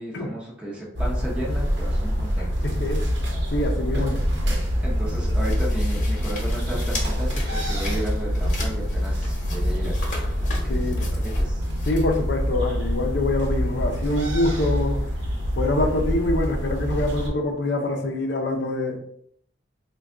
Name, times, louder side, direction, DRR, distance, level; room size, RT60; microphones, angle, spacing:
voice 1, 0.0-2.5 3.9-4.2 4.4-11.6, right 1 dB, 5° right, -5 dB, 0.7 m, -34 dB
sound 1, 0.9-17.3, equal, 70° right, 0.8 m, -25 dB
voice 2, 2.6-3.1 3.5-4.2 10.7-11.1 11.9-15.1 15.6-19.0, left 2 dB, 70° left, 3 dB, 0.6 m, -25 dB
sound 2, 3.5-13.6, left 1 dB, 45° left, 1.0 m, -35 dB
3.4 x 2.3 x 3.6 m, 0.66 s
head